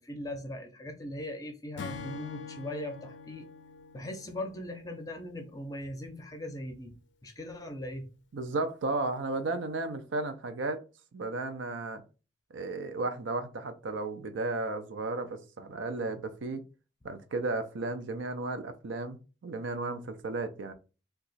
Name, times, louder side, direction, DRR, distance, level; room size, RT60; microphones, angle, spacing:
voice 1, 0.0-3.5 3.9-7.0 7.2-8.1, left 1 dB, 20° left, 0.5 m, -39 dB
Acoustic guitar / Strum, 1.8-5.2, left 4 dB, 65° left, 0.4 m, -44 dB
voice 2, 8.3-10.8 11.1-12.0 12.5-16.6 17.0-20.7, right 3 dB, 80° right, 0.5 m, -34 dB
2.9 x 2.3 x 4.0 m
head